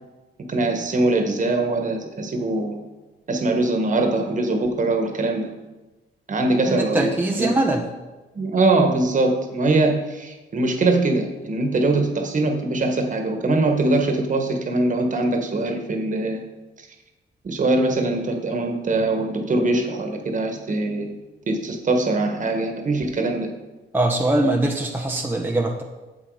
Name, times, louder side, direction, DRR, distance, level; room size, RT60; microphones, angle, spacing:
voice 1, 0.5-2.8 3.3-5.5 6.3-7.1 7.4-7.5 8.3-16.4 16.8-16.9 17.4-21.2 21.5-23.5, right 2 dB, 40° right, 4 dB, 1.4 m, -22 dB
voice 2, 6.7-7.9 23.9-25.8, right 2 dB, 10° right, 1 dB, 0.8 m, -22 dB
8.1 x 7.4 x 4.8 m, 1.2 s
cardioid pair, 90°, 20 cm